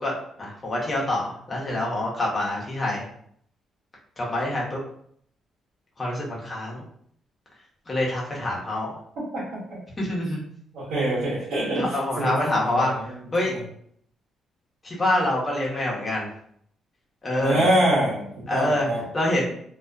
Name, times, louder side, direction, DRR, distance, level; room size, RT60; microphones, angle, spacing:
voice 1, 0.4-3.0 4.2-4.8 6.0-6.8 7.9-8.9 10.0-10.4 11.8-13.6 14.8-16.3 17.2-17.7 18.5-18.9 19.1-19.4, left 1 dB, 25° left, -4 dB, 0.9 m, -26 dB
voice 2, 10.7-12.3 12.6-13.1 17.4-19.0, right 1 dB, 80° right, -8 dB, 0.9 m, -25 dB
2.4 x 2.2 x 2.4 m, 0.66 s
cardioid pair, 90°, 0 cm